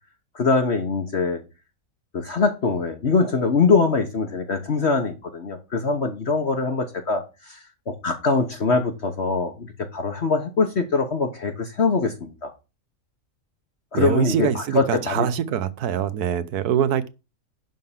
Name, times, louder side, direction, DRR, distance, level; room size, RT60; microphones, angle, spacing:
voice 1, 0.3-1.4 2.1-7.6 7.9-12.5 13.9-15.3, left 4 dB, 50° left, 1.4 m, -23 dB
voice 2, 13.9-17.1, right 9 dB, 85° right, 1.4 m, -24 dB
11.0 x 3.8 x 7.3 m
omnidirectional pair, 1.6 m